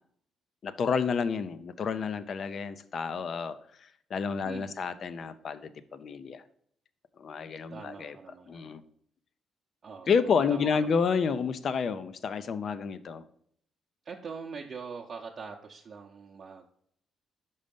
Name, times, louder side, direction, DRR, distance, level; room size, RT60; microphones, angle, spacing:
voice 1, 0.6-3.6 4.1-6.4 7.2-8.1 8.5-8.8 10.1-13.2, left 6 dB, 55° left, 13 dB, 0.5 m, -30 dB
voice 2, 4.4-5.1 7.7-8.7 9.8-10.9 14.0-16.7, right 5 dB, 50° right, -1 dB, 0.7 m, -43 dB
5.5 x 5.1 x 5.2 m, 0.66 s
cardioid pair, 90°, 0 cm